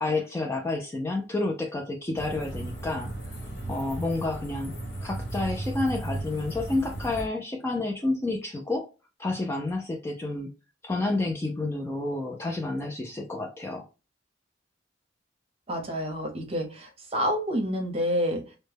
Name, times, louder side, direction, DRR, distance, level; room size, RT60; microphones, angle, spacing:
voice 1, 0.0-3.1 3.7-4.7 5.0-8.9 9.2-10.5 10.8-13.8, left 2 dB, 15° left, 0.3 m, -29 dB
sound 1, 2.2-7.3, right 1 dB, 70° left, 1.1 m, -35 dB
voice 2, 15.7-18.6, equal, 30° right, 0.7 m, -28 dB
2.1 x 2.0 x 3.2 m
head